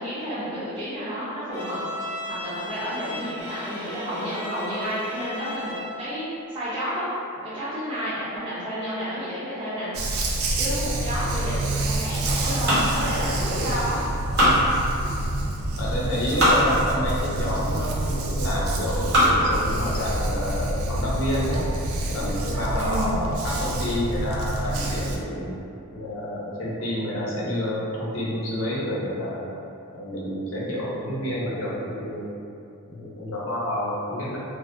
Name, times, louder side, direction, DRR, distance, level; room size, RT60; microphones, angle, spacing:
voice 1, 0.0-1.8 2.3-7.1 7.4-9.9 10.6-14.0 22.7-23.2, equal, 25° right, -14 dB, 0.5 m, -30 dB
Bowed string instrument, 1.5-6.1, left 1 dB, 65° right, 1.2 m, -36 dB
Dog, 9.9-25.2, right 1 dB, 90° right, 0.3 m, -27 dB
sound 1, 12.5-13.7 14.1-15.2 15.9-16.6 17.3-17.4 18.1-18.5 18.9-19.5 20.1-20.2 20.5-20.6 21.0-21.4, equal, 50° right, 0.9 m, -23 dB
voice 2, 15.8-21.7 22.1-25.6 25.9-29.5 29.9-32.3 32.9-34.4, equal, 65° left, -6 dB, 0.6 m, -29 dB
2.5 x 2.0 x 2.5 m, 2.6 s
head